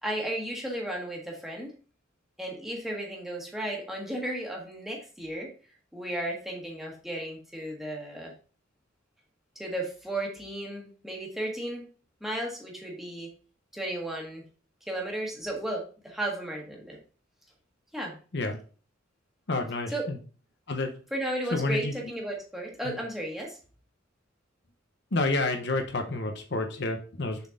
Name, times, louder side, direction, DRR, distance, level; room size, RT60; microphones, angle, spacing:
voice 1, 0.0-1.7 2.4-5.5 5.9-8.3 9.5-11.9 12.2-13.3 13.7-14.4 14.9-17.0 17.9-18.2 19.9-20.1 21.1-23.6, right 1 dB, ahead, -2 dB, 1.6 m, -34 dB
voice 2, 19.5-20.2 20.7-20.9 21.5-21.9 22.8-23.0 25.1-27.4, left 2 dB, 60° left, 4 dB, 0.8 m, -29 dB
6.8 x 4.4 x 3.7 m, 0.38 s
head